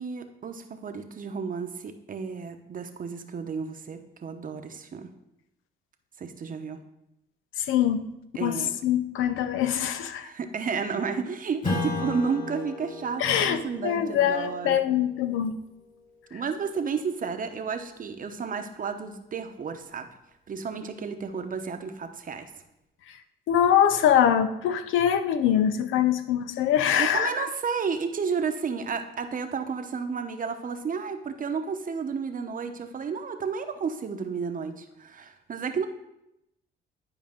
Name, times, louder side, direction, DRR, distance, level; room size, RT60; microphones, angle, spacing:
voice 1, 0.0-5.1 6.2-6.8 8.3-8.7 10.1-14.8 16.3-20.1 20.5-22.5 27.0-35.9, right 5 dB, 45° right, 7 dB, 0.9 m, -32 dB
voice 2, 7.6-8.1 8.4-10.3 13.2-15.6 16.3-16.4 23.5-27.4, left 9 dB, 85° left, 10 dB, 0.6 m, -23 dB
Strum, 11.6-16.6, left 3 dB, 40° left, 3.2 m, -36 dB
11.0 x 5.0 x 3.7 m, 0.84 s
cardioid pair, 90°, 20 cm